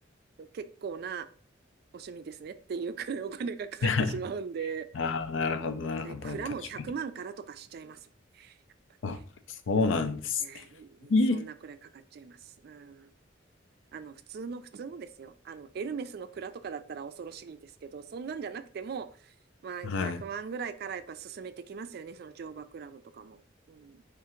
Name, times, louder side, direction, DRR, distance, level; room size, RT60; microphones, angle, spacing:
voice 1, 0.4-1.3 1.9-5.1 6.0-8.0 8.3-8.6 10.4-11.5 11.9-13.1 13.9-19.3 19.6-23.4 23.7-24.0, right 6 dB, 55° right, 11 dB, 0.3 m, -39 dB
voice 2, 3.8-4.1 4.9-6.4 9.0-9.2 9.5-10.6 11.1-11.5 19.8-20.2, left 3 dB, 80° left, 9 dB, 0.5 m, -28 dB
3.6 x 2.5 x 4.3 m, 0.43 s
head